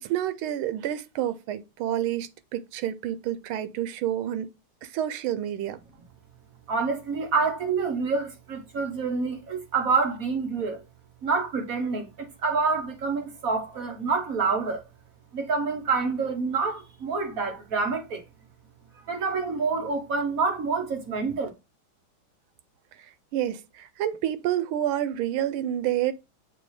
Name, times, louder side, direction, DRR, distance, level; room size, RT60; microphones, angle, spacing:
voice 1, 0.0-4.5 4.8-5.8 23.3-26.1, right 11 dB, 90° right, 1.5 m, -29 dB
voice 2, 6.7-10.8 11.2-14.8 15.3-18.2 19.1-21.5, right 4 dB, 45° right, 1.5 m, -27 dB
7.0 x 2.8 x 4.8 m
omnidirectional pair, 2.3 m